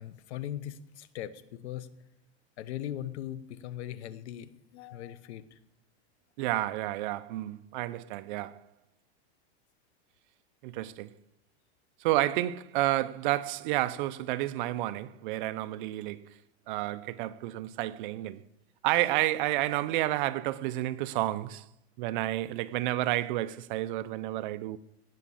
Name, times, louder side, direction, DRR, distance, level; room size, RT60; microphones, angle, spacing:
voice 1, 0.0-1.9 2.6-5.6, left 11 dB, 80° left, 1.1 m, -39 dB
voice 2, 6.4-8.6 10.6-11.1 12.0-16.3 16.7-18.4 18.8-21.7 22.0-24.8, right 15 dB, 50° right, 0.6 m, -30 dB
18.0 x 6.1 x 7.0 m
supercardioid pair, 165°, 33 cm